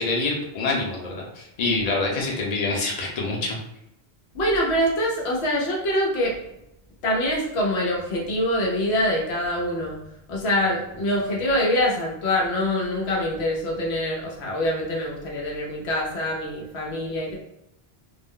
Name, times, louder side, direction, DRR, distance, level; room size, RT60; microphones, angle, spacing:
voice 1, 0.0-3.6, left 3 dB, 45° left, -2 dB, 0.7 m, -26 dB
voice 2, 4.3-6.4 7.0-10.0 10.3-17.4, left 1 dB, 90° left, -2 dB, 1.0 m, -24 dB
2.5 x 2.0 x 3.6 m, 0.83 s
omnidirectional pair, 1.1 m